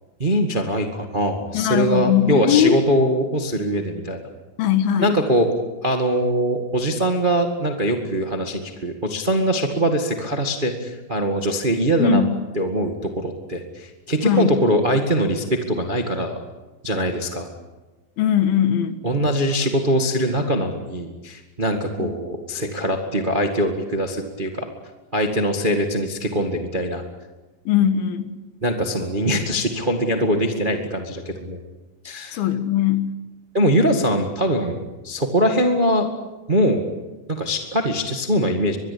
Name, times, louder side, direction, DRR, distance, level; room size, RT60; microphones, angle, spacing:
voice 1, 0.2-4.2 5.0-5.5 5.8-12.2 12.5-16.4 16.8-17.5 19.0-24.6 25.1-27.0 28.6-31.6 32.0-32.4 33.5-36.1 36.5-36.9 37.3-38.8, equal, 25° right, 4 dB, 1.0 m, -22 dB
voice 2, 1.5-2.8 4.6-5.1 12.0-12.4 14.2-14.6 18.2-19.0 22.0-22.1 27.7-28.4 32.3-33.1, left 8 dB, 75° left, 10 dB, 3.3 m, -20 dB
24.0 x 22.0 x 8.7 m, 1.1 s
omnidirectional pair, 4.4 m